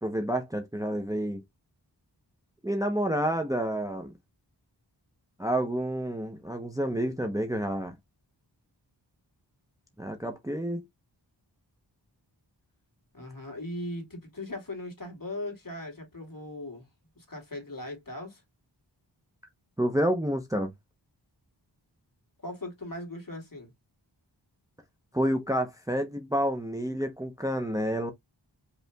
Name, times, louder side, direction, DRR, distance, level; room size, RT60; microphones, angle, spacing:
voice 1, 0.0-1.4 2.6-4.1 5.4-8.0 10.0-10.8 19.8-20.7 25.1-28.1, equal, 10° right, 0.8 m, -29 dB
voice 2, 13.1-16.9 17.1-18.4 22.4-23.7, left 1 dB, 45° left, 2.6 m, -39 dB
5.4 x 3.2 x 2.3 m
wide cardioid pair, 65°, 44 cm